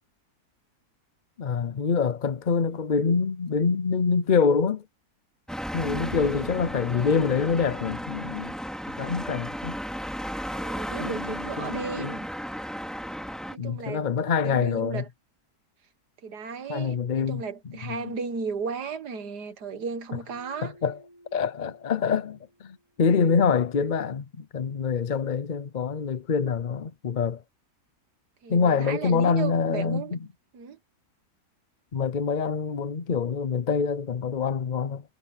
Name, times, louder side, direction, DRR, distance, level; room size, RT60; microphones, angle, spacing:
voice 1, 1.4-4.8 5.7-8.5 9.0-9.7 11.0-12.1 13.6-15.0 16.7-17.4 17.9-18.1 20.6-21.0 21.3-27.4 28.5-30.2 31.9-35.0, left 5 dB, 45° left, 0.6 m, -25 dB
sound 1, 5.5-13.6, equal, ahead, 2.4 m, -34 dB
voice 2, 10.5-12.3 13.5-14.1 14.4-15.1 16.2-20.7 28.4-30.2 30.5-30.8, right 5 dB, 80° right, 2.0 m, -35 dB
Keyboard (musical), 20.3-23.1, right 1 dB, 60° right, 4.6 m, -55 dB
omnidirectional pair, 1.7 m